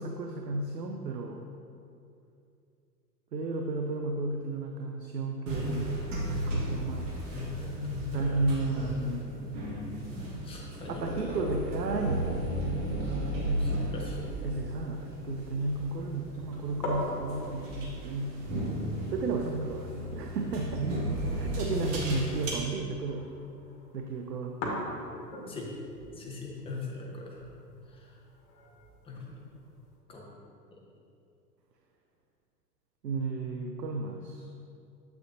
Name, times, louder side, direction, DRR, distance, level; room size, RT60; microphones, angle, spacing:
voice 1, 0.0-1.5 3.3-5.9 6.3-7.1 8.1-9.4 10.9-12.4 14.4-18.4 19.1-20.9 21.3-23.3 23.9-24.6 33.0-34.4, right 3 dB, 75° right, 3 dB, 0.6 m, -33 dB
sound 1, 5.5-22.5, right 1 dB, 50° right, 1.6 m, -34 dB
voice 2, 7.3-8.4 8.8-9.4 10.4-11.5 13.6-14.2 25.3-25.7 26.2-27.4 29.0-29.4 30.1-30.3, left 4 dB, 10° left, -2 dB, 0.9 m, -40 dB
sound 2, 14.1-30.0, left 1 dB, 45° left, 1.4 m, -43 dB
7.7 x 6.3 x 2.6 m, 2.6 s
figure-of-eight pair, 100°, 49 cm